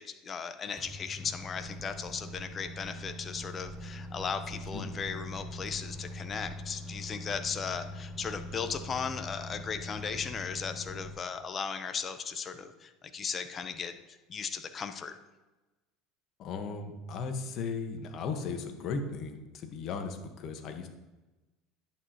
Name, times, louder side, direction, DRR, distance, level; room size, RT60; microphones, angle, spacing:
voice 1, 0.0-15.1, left 6 dB, 35° left, 9 dB, 1.0 m, -37 dB
Microwave oven, 0.8-11.1, left 1 dB, ahead, 1.9 m, -43 dB
voice 2, 16.4-20.9, left 4 dB, 50° left, 5 dB, 1.5 m, -36 dB
11.0 x 8.7 x 3.1 m, 1.1 s
hypercardioid pair, 75°, 0 cm